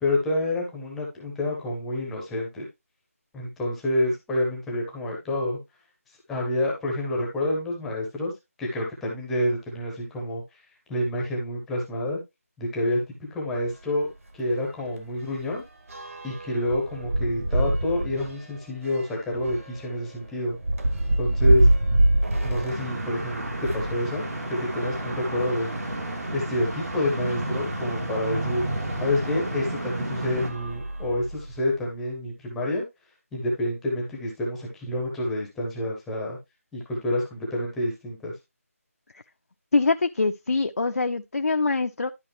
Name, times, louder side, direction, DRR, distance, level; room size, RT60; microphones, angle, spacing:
voice 1, 0.0-2.7 3.3-5.6 6.3-8.3 8.6-10.6 10.9-12.2 12.6-14.1 14.3-15.6 16.2-20.6 21.2-21.7 22.4-24.3 24.6-25.8 26.3-28.6 29.0-32.8 33.3-36.4 36.7-38.3, left 1 dB, ahead, 0.7 m, -28 dB
sound 1, 13.5-13.7 14.1-14.2 14.5-24.0 24.7-26.1 26.8-26.9 27.1-27.2 28.9-29.0 29.6-29.8 30.3-31.6, right 1 dB, 65° right, 1.8 m, -26 dB
sound 2, 22.7-30.5, right 1 dB, 85° right, 2.6 m, -31 dB
voice 2, 39.7-42.1, left 3 dB, 70° left, 0.6 m, -24 dB
11.5 x 5.0 x 3.0 m
figure-of-eight pair, 175°, 8 cm